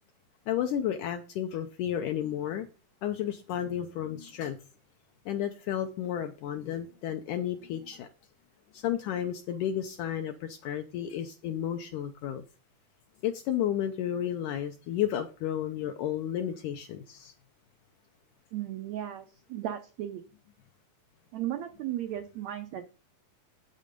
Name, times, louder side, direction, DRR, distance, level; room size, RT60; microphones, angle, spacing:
voice 1, 0.5-2.7 3.0-4.6 5.3-8.1 8.7-12.4 13.2-17.3, left 10 dB, 75° left, 1.9 m, -32 dB
voice 2, 18.5-20.2 21.3-22.9, right 12 dB, 90° right, 1.5 m, -35 dB
8.4 x 6.9 x 5.1 m
omnidirectional pair, 4.2 m